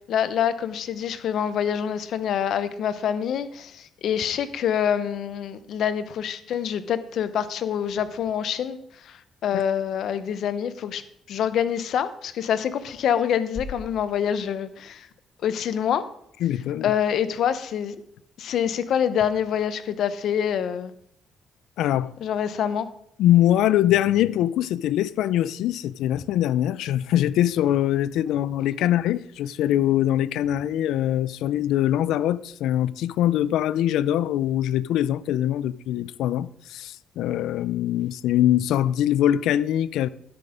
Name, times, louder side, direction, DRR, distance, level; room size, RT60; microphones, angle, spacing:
voice 1, 0.1-8.8 9.0-11.0 11.3-15.1 15.4-16.0 16.8-18.0 18.4-20.9 22.2-22.9 28.3-28.4 28.8-28.9, left 8 dB, 70° left, 0.8 m, -26 dB
sound 1, 13.5-15.6, left 4 dB, 50° left, 1.7 m, -41 dB
voice 2, 16.4-16.9 21.8-22.1 23.2-40.1, left 12 dB, 85° left, 0.4 m, -23 dB
12.5 x 6.1 x 5.1 m
cardioid pair, 90°, 0 cm